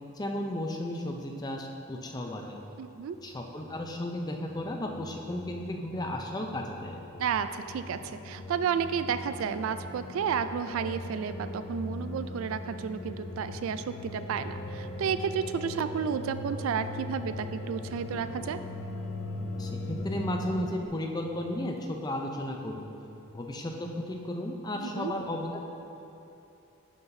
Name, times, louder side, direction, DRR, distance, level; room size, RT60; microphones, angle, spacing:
voice 1, 0.1-2.6 3.2-7.0 19.6-22.9 23.3-25.6, left 1 dB, 20° left, 2 dB, 0.5 m, -34 dB
voice 2, 2.8-3.2 7.2-18.6 24.8-25.1, right 7 dB, 75° right, 11 dB, 0.3 m, -32 dB
sound 1, 3.1-20.9, left 1 dB, 65° left, 0.5 m, -40 dB
11.0 x 5.8 x 2.7 m, 2.8 s
head